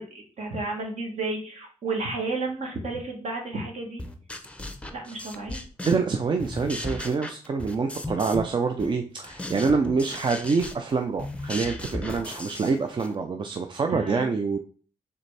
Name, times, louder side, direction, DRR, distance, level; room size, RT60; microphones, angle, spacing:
voice 1, 0.0-4.1 4.9-5.6 13.9-14.3, right 3 dB, 60° right, 2 dB, 1.3 m, -32 dB
sound 1, 4.0-6.1 6.4-8.5 8.8-13.1, left 1 dB, 10° left, 0.6 m, -36 dB
voice 2, 5.9-14.6, right 4 dB, 35° right, 6 dB, 0.4 m, -26 dB
4.0 x 3.3 x 3.2 m, 0.41 s
cardioid pair, 65°, 13 cm